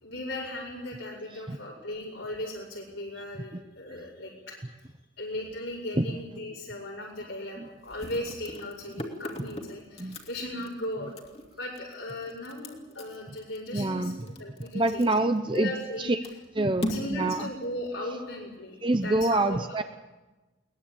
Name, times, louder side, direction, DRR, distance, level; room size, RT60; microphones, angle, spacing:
voice 1, 0.0-4.5 5.2-11.1 11.6-15.2 15.5-16.2 16.9-18.8 19.0-19.8, left 1 dB, 80° left, -5 dB, 5.5 m, -37 dB
sound 1, 6.4-6.5 6.9-7.0 7.8-16.0 16.2-18.4, equal, 30° left, 2.5 m, -39 dB
voice 2, 13.7-14.2 14.7-15.7 16.0-16.2 16.6-17.5 18.8-19.8, right 2 dB, 25° right, 9 dB, 0.7 m, -26 dB
21.5 x 20.0 x 8.7 m, 1.2 s
head